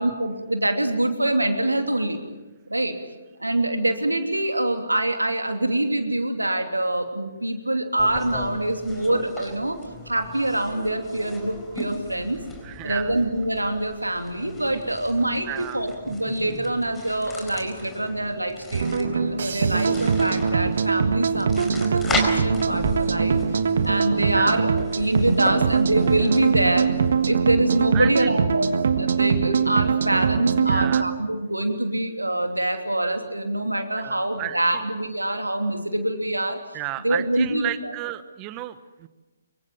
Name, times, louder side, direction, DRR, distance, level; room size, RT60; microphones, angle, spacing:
voice 1, 0.0-2.2 2.7-3.0 3.4-9.8 10.1-12.4 12.8-23.4 23.8-24.7 25.0-26.9 27.2-36.6 37.0-37.9, right 1 dB, 85° right, 5 dB, 3.0 m, -25 dB
sound 1, 8.0-27.4, left 2 dB, 10° left, 4.3 m, -37 dB
voice 2, 12.6-13.1 15.5-15.8 24.3-24.6 27.9-28.3 30.7-31.1 34.0-34.8 36.7-39.1, right 17 dB, 25° right, 14 dB, 1.1 m, -33 dB
sound 2, 18.7-31.0, right 6 dB, 55° right, 1.5 m, -22 dB
25.5 x 23.5 x 7.7 m, 1.1 s
figure-of-eight pair, 130°, 0 cm